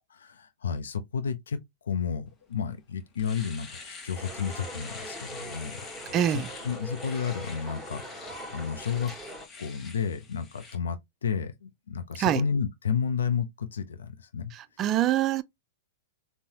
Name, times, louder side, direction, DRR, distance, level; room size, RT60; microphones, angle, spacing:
voice 1, 0.2-1.6 1.8-6.2 6.6-9.1 9.6-14.5, left 6 dB, 80° left, 0.5 m, -32 dB
Domestic sounds home sounds, 2.5-2.6 3.0-10.8, left 4 dB, 20° left, 0.9 m, -46 dB
sound 1, 4.1-9.5, right 1 dB, 5° right, 1.2 m, -42 dB
voice 2, 6.1-6.5 12.2-12.5 14.5-15.4, right 11 dB, 35° right, 0.3 m, -25 dB
3.8 x 2.0 x 2.8 m
hypercardioid pair, 115°, 0 cm